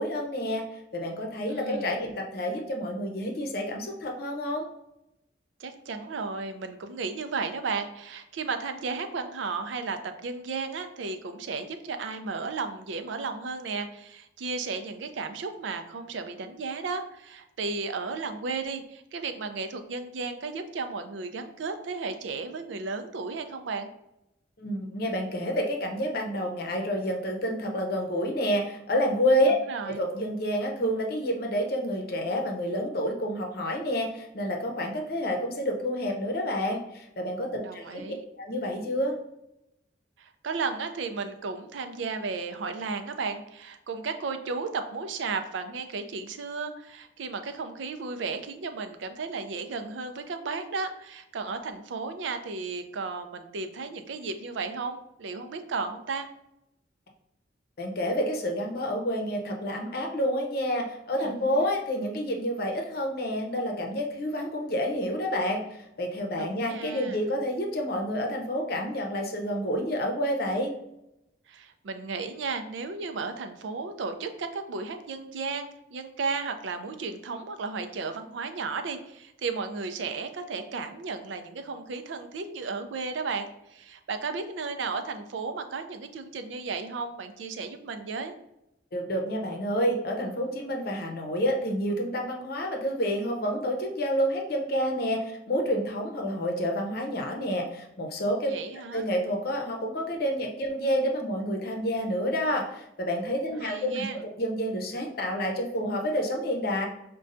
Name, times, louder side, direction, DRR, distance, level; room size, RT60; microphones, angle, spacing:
voice 1, 0.0-4.7 24.6-29.6 29.9-38.0 38.4-39.2 57.8-70.7 88.9-98.5 98.9-106.9, equal, 55° left, 2 dB, 0.7 m, -29 dB
voice 2, 1.5-2.0 5.6-23.9 29.7-30.0 37.6-38.2 40.2-56.3 61.2-61.7 66.4-67.2 71.5-88.3 98.5-99.1 103.6-104.2, right 4 dB, 85° right, 8 dB, 0.4 m, -34 dB
5.2 x 2.2 x 2.5 m, 0.85 s
head